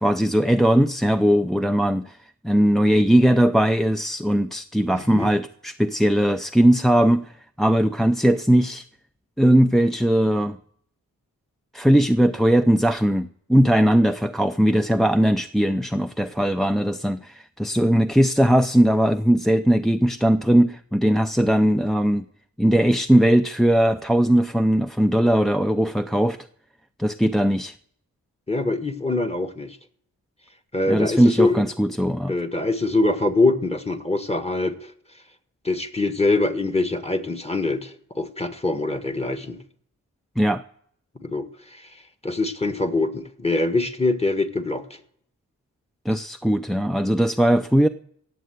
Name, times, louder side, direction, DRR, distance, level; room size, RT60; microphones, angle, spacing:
voice 1, 0.0-2.2 2.4-7.3 7.6-8.8 9.4-10.6 11.7-22.2 22.6-26.4 27.0-27.7 30.9-32.3 40.4-40.6 46.1-47.9, equal, ahead, 7 dB, 0.5 m, -19 dB
voice 2, 4.9-5.3 28.5-29.8 30.7-31.6 32.3-34.9 35.6-39.6 41.1-45.0, left 2 dB, 20° left, 5 dB, 1.5 m, -24 dB
17.5 x 7.7 x 7.9 m, 0.67 s
cardioid pair, 70°, 35 cm